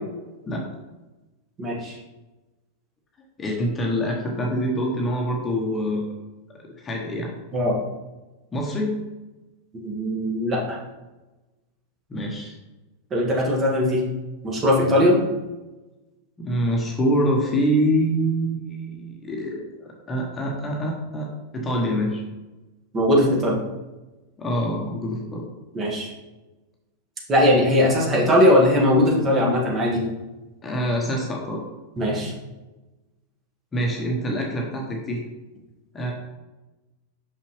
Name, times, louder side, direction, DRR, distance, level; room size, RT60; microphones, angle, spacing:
voice 1, 1.6-2.0 7.5-7.8 9.8-10.8 13.1-14.0 14.4-15.2 22.9-23.6 25.7-26.1 27.3-30.0 32.0-32.3, left 1 dB, 25° right, -2 dB, 1.5 m, -19 dB
voice 2, 3.4-6.1 6.8-7.3 8.5-9.0 12.1-12.5 16.4-22.2 24.4-25.4 30.6-31.6 33.7-35.2 35.9-36.1, equal, 20° left, -1 dB, 1.1 m, -25 dB
6.0 x 5.5 x 3.2 m, 1.1 s
figure-of-eight pair, 90°, 0 cm